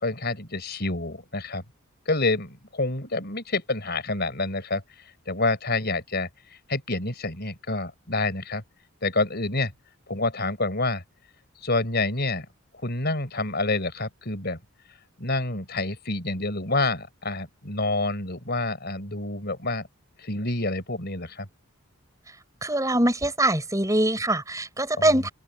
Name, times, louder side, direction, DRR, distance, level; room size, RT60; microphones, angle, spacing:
voice 1, 0.0-1.6 2.1-4.8 5.3-6.3 6.7-8.6 9.0-9.7 10.1-11.0 11.6-12.4 12.8-14.6 15.2-19.9 20.2-21.5 25.0-25.3, left 2 dB, 45° left, 4.9 m, -28 dB
voice 2, 22.6-25.3, right 1 dB, 15° right, 5.1 m, -23 dB
open air
head